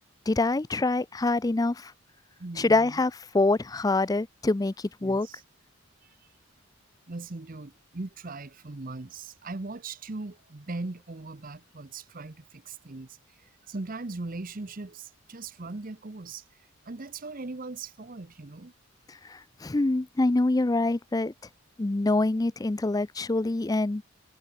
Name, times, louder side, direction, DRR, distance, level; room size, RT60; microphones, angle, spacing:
voice 1, 0.3-1.9 2.6-5.3 19.3-21.3 21.8-24.0, left 2 dB, 15° left, 0.4 m, -25 dB
voice 2, 2.4-3.0 5.0-5.4 7.1-13.1 13.7-16.4 16.9-18.7, right 3 dB, 40° right, 0.8 m, -39 dB
head